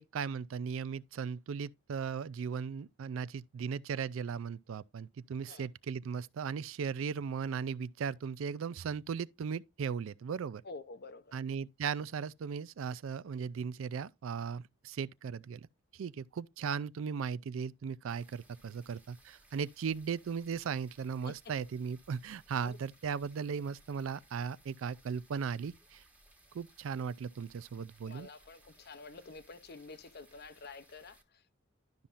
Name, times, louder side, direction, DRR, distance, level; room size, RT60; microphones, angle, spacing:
voice 1, 0.0-10.6 11.3-15.7 15.9-26.0 26.5-28.3, right 6 dB, 70° right, 0.4 m, -37 dB
voice 2, 10.6-11.4 21.2-21.5 22.6-22.8 28.1-31.4, left 3 dB, 50° left, 0.6 m, -49 dB
sound 1, 18.1-31.2, right 1 dB, 5° right, 1.2 m, -64 dB
12.0 x 5.5 x 2.5 m
head